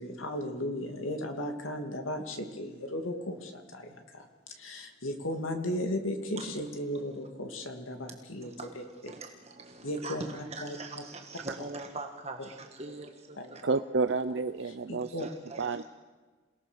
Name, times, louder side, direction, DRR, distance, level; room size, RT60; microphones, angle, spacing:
voice 1, 0.0-9.1 9.8-10.3 10.6-11.0 13.4-13.7 14.9-15.3, left 1 dB, 85° left, 5 dB, 2.7 m, -36 dB
voice 2, 10.5-12.4 12.8-13.1 13.5-13.6 15.2-15.6, right 3 dB, 30° right, 3 dB, 1.5 m, -41 dB
voice 3, 13.6-15.3 15.6-15.9, right 4 dB, 65° right, 12 dB, 0.6 m, -30 dB
27.5 x 18.5 x 6.5 m, 1.4 s
head